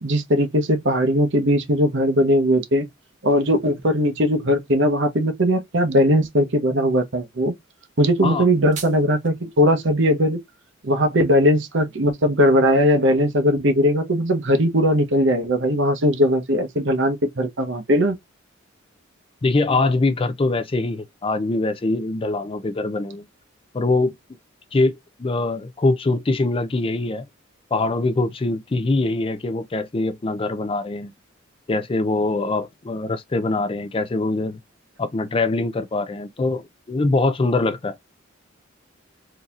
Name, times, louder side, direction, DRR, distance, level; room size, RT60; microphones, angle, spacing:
voice 1, 0.0-2.9 3.2-7.5 8.0-10.4 10.8-18.1, equal, 60° right, 0.9 m, -19 dB
sound 1, 8.3-9.3, right 7 dB, 40° right, 0.9 m, -39 dB
voice 2, 19.4-23.3 23.7-24.2 24.7-27.3 27.7-31.1 31.7-34.6 35.0-37.9, left 2 dB, 25° left, 0.4 m, -23 dB
3.9 x 2.8 x 2.4 m
head